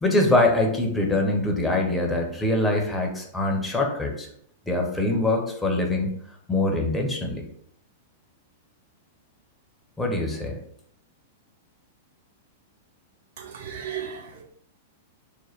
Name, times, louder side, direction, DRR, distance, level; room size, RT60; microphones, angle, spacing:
voice 1, 0.0-4.3 4.7-6.1 6.5-7.4 10.0-10.6, left 2 dB, 10° left, 1 dB, 0.8 m, -23 dB
voice 2, 13.4-14.4, right 8 dB, 60° right, 2 dB, 0.7 m, -35 dB
3.2 x 2.1 x 3.9 m, 0.68 s
figure-of-eight pair, 100°, 0 cm